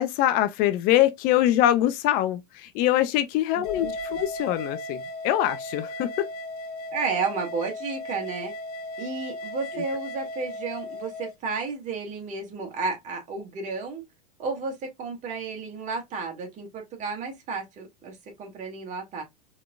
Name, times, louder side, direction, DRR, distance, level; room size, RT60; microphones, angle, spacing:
voice 1, 0.0-6.3 9.7-9.8, left 13 dB, 45° left, 0.6 m, -24 dB
voice 2, 3.5-4.2 6.9-8.5 9.0-14.0 14.4-19.2, right 4 dB, 35° right, 2.4 m, -32 dB
sound 1, 3.6-11.3, left 2 dB, 65° left, 1.1 m, -36 dB
4.5 x 4.1 x 2.5 m
hypercardioid pair, 90°, 21 cm